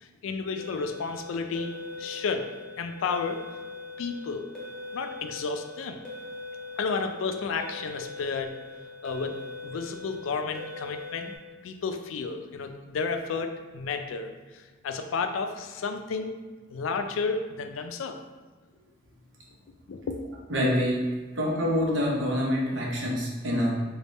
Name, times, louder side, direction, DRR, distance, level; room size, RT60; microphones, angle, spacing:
voice 1, 0.0-2.5 2.8-3.4 4.0-4.5 4.9-6.0 6.8-8.6 9.0-11.3 11.6-16.4 16.7-18.2 19.9-20.2, left 4 dB, 90° left, 7 dB, 0.4 m, -32 dB
sound 1, 0.6-11.4, left 3 dB, 5° left, 0.5 m, -41 dB
voice 2, 20.5-21.1 21.3-23.7, equal, 70° right, -3 dB, 0.8 m, -26 dB
3.5 x 2.3 x 3.9 m, 1.4 s
head